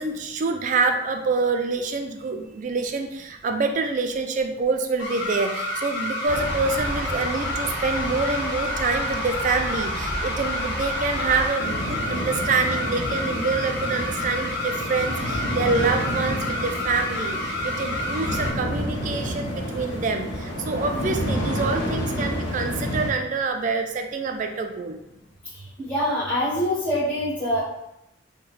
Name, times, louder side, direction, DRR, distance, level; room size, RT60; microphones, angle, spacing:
voice 1, 0.0-25.0, right 4 dB, 40° right, 5 dB, 0.3 m, -26 dB
sound 1, 5.0-18.5, left 1 dB, 25° left, 1.3 m, -30 dB
sound 2, 6.2-11.5, equal, 55° left, 1.3 m, -32 dB
sound 3, 11.6-23.1, equal, 75° left, 0.8 m, -29 dB
voice 2, 25.8-27.6, left 1 dB, 5° left, -14 dB, 1.3 m, -24 dB
2.9 x 2.1 x 3.9 m, 0.86 s
head